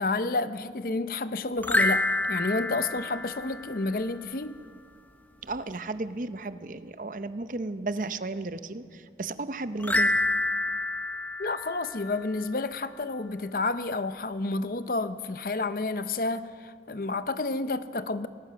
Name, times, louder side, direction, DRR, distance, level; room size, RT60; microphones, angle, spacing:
voice 1, 0.0-4.6 11.4-18.3, left 3 dB, 50° left, 0.7 m, -30 dB
sound 1, 1.6-4.1 9.8-12.4, left 2 dB, 10° left, 0.7 m, -28 dB
voice 2, 5.4-10.2, right 2 dB, 45° right, 0.7 m, -34 dB
23.0 x 18.5 x 6.1 m
head